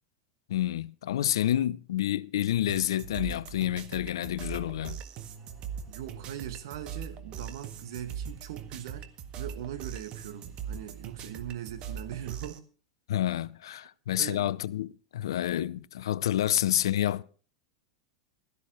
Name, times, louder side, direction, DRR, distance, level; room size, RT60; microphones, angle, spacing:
voice 1, 0.5-5.0 13.1-17.2, left 12 dB, 70° left, 0.5 m, -29 dB
sound 1, 2.7-12.6, right 7 dB, 40° right, 1.6 m, -41 dB
voice 2, 5.9-9.1 9.4-12.6 14.2-14.5, right 11 dB, 65° right, 1.8 m, -40 dB
16.5 x 13.5 x 3.1 m
hypercardioid pair, 95°, 3 cm